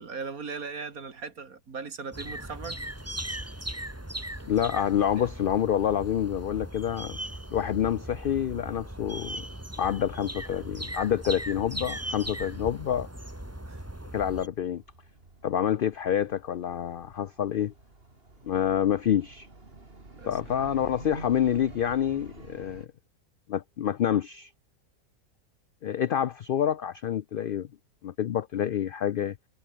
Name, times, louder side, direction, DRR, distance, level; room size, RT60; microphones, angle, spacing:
voice 1, 0.0-2.8 5.2-5.3 13.7-13.8 20.2-20.4, right 5 dB, 70° right, 2.8 m, -38 dB
sound 1, 2.1-14.5, right 1 dB, 10° right, 2.4 m, -38 dB
voice 2, 4.5-7.2 7.5-9.4 9.8-13.1 14.1-14.8 15.4-17.7 18.4-19.5 20.2-22.9 23.5-24.5 25.8-27.7 28.0-29.3, left 9 dB, 85° left, 0.4 m, -27 dB
sound 2, 10.9-22.9, right 2 dB, 40° right, 3.7 m, -49 dB
omnidirectional pair, 1.5 m